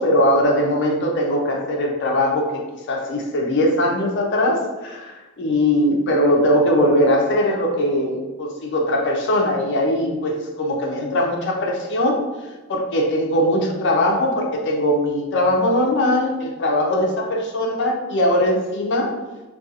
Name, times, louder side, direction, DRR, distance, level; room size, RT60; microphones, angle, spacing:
voice 1, 0.0-2.6 2.9-12.2 12.7-19.1, left 1 dB, 50° left, 0 dB, 0.5 m, -20 dB
2.4 x 2.3 x 2.7 m, 1.2 s
head